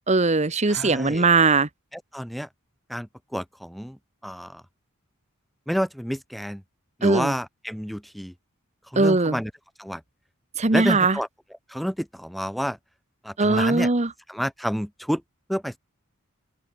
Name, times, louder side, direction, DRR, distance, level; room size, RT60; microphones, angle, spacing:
voice 1, 0.1-1.7 7.0-7.3 9.0-9.4 10.6-11.2 13.4-14.1, right 3 dB, 35° right, 1.2 m, -20 dB
voice 2, 0.6-1.3 1.9-2.5 2.9-4.6 5.7-6.6 7.0-8.3 8.9-9.5 9.8-10.0 10.7-11.3 11.7-12.8 13.2-13.9 14.3-15.2 15.5-15.8, equal, ahead, 4.0 m, -29 dB
open air
head